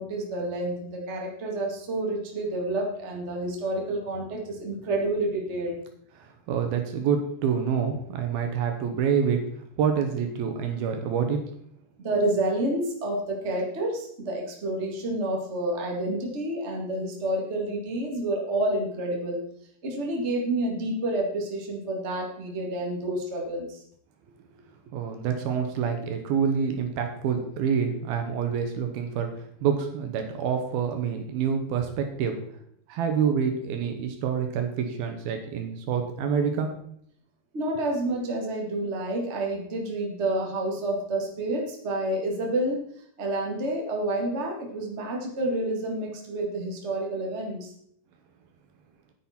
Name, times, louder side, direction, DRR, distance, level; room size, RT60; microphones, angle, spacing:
voice 1, 0.0-5.8 12.0-19.4 19.8-23.8 37.5-42.8 43.2-47.7, right 1 dB, 50° right, 0 dB, 0.7 m, -29 dB
voice 2, 6.2-9.4 9.8-11.5 24.9-32.4 32.9-36.8, right 7 dB, 75° right, 5 dB, 2.8 m, -27 dB
10.0 x 9.9 x 4.3 m, 0.69 s
omnidirectional pair, 4.7 m